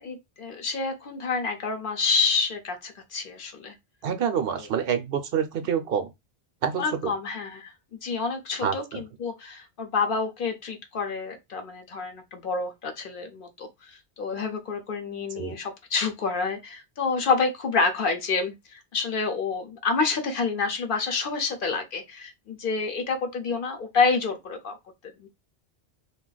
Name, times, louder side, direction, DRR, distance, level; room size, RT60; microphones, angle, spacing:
voice 1, 0.0-3.7 6.8-24.8 25.2-25.3, left 4 dB, 60° left, 0.7 m, -28 dB
voice 2, 4.0-6.1 6.6-7.1 8.6-9.0 15.4-15.6, right 7 dB, 65° right, 0.7 m, -27 dB
2.5 x 2.3 x 3.7 m
omnidirectional pair, 1.1 m